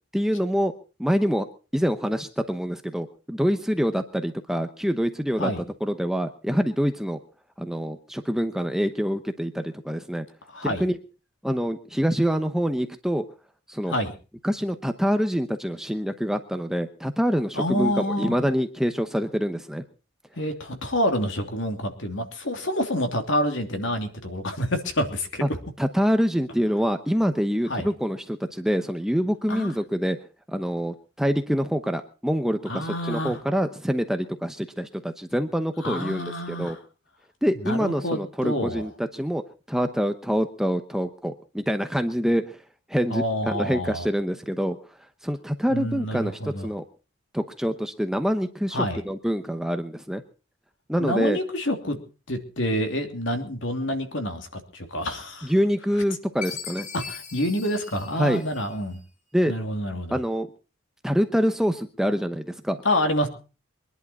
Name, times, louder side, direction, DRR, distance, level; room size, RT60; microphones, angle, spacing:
voice 1, 0.1-0.7 1.0-1.5 1.7-5.5 5.8-7.2 7.6-10.3 10.6-11.0 11.4-13.2 13.7-13.9 14.4-17.9 18.2-19.8 25.4-25.5 25.8-30.2 30.5-36.8 37.4-39.4 39.7-42.6 42.9-44.8 45.2-46.8 47.3-50.2 50.9-51.4 55.4-56.9 58.2-58.4 59.3-59.5 60.1-60.5 61.0-62.8, equal, ahead, 7 dB, 0.8 m, -25 dB
voice 2, 10.5-10.8 13.9-14.1 17.5-18.3 20.4-25.4 27.7-27.9 29.5-29.7 32.7-33.4 35.8-36.8 37.6-38.9 43.1-44.1 45.7-46.7 48.7-49.0 51.0-52.0 52.3-55.5 56.9-59.0 59.5-60.2 62.8-63.3, equal, 65° left, 5 dB, 2.9 m, -27 dB
Chime, 56.4-59.0, left 6 dB, 35° left, 1.7 m, -39 dB
23.5 x 11.0 x 4.2 m, 0.34 s
head